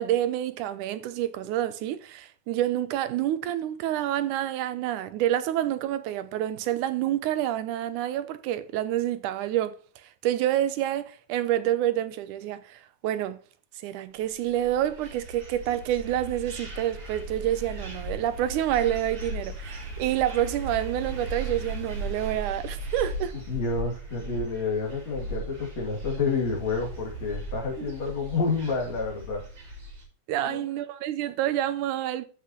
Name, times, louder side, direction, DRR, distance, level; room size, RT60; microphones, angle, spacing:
voice 1, 0.0-13.4 13.8-23.3 27.8-27.9 30.3-32.3, right 12 dB, 80° right, 2.2 m, -28 dB
sound 1, 14.3-30.0, right 2 dB, 45° right, 3.6 m, -37 dB
voice 2, 23.3-29.4 30.5-30.6, left 4 dB, 60° left, 3.7 m, -29 dB
13.0 x 6.0 x 2.9 m
omnidirectional pair, 3.6 m